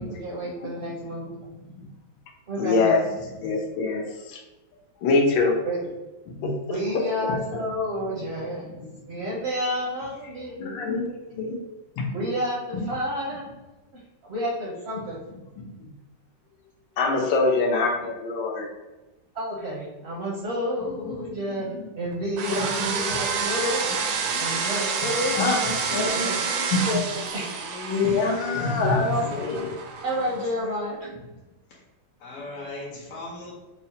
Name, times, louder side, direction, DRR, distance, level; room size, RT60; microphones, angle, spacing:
voice 1, 0.0-1.3 2.5-2.9 5.6-5.8 6.7-11.0 12.1-13.4 13.9-15.2 19.3-21.7 21.9-25.5 26.1-26.4 27.3-27.4 29.0-29.3 30.0-31.1, equal, 60° right, -4 dB, 0.6 m, -30 dB
voice 2, 0.6-0.9 1.5-1.9 2.6-4.4 5.0-5.6 6.3-6.6 6.9-7.6 8.2-8.3 8.6-9.2 10.5-11.6 12.0-12.1 12.7-12.9 15.6-15.9 17.0-18.7 21.0-21.8 22.6-22.9 24.2-24.6 25.3-27.3 27.7-29.7, left 3 dB, 85° left, 1 dB, 1.3 m, -26 dB
voice 3, 6.8-7.1 28.2-28.9 29.3-30.8 31.7-31.8 32.2-33.5, left 2 dB, 60° left, -4 dB, 0.8 m, -39 dB
sound 1, 22.4-30.5, right 5 dB, 80° right, 1.3 m, -29 dB
5.4 x 2.0 x 2.7 m, 1.1 s
omnidirectional pair, 2.0 m